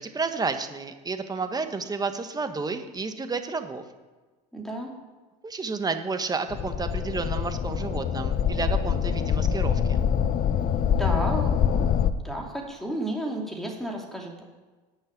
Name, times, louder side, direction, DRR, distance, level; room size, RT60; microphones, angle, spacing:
voice 1, 0.0-3.8 5.4-10.0, right 4 dB, 20° right, 8 dB, 1.2 m, -31 dB
voice 2, 4.5-4.9 10.9-14.4, right 1 dB, ahead, 0 dB, 2.6 m, -33 dB
sound 1, 6.5-12.1, left 8 dB, 40° left, 0.8 m, -25 dB
10.5 x 6.5 x 9.1 m, 1.3 s
supercardioid pair, 100°, 21 cm